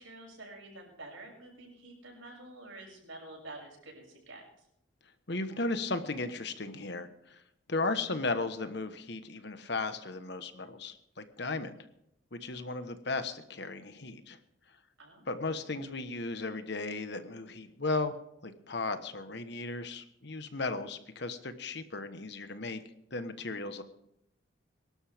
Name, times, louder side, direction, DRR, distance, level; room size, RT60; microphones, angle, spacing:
voice 1, 0.0-4.4 15.0-15.5, right 2 dB, 80° right, 1 dB, 6.9 m, -48 dB
voice 2, 5.3-7.1 7.7-11.7 12.3-14.4 15.3-18.1 18.4-22.8 23.1-23.8, left 3 dB, 55° left, 9 dB, 1.3 m, -35 dB
23.5 x 12.5 x 3.6 m, 0.77 s
head